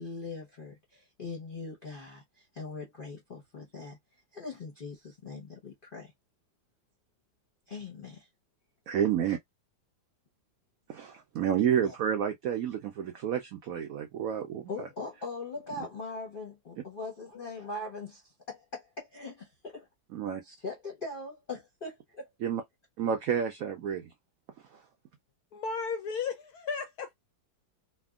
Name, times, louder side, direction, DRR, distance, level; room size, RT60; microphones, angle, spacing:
voice 1, 0.0-4.0 4.3-6.1 7.7-8.3 11.8-11.9 14.7-19.9 20.4-22.3, left 3 dB, 45° left, 0.7 m, -41 dB
voice 2, 8.9-9.4 10.9-14.9 15.8-15.9 20.1-20.4 22.4-22.6 23.0-24.1 24.7-24.8, right 8 dB, 85° right, 0.7 m, -30 dB
voice 3, 25.5-27.1, left 5 dB, 75° left, 0.9 m, -34 dB
3.3 x 2.1 x 2.3 m
omnidirectional pair, 2.1 m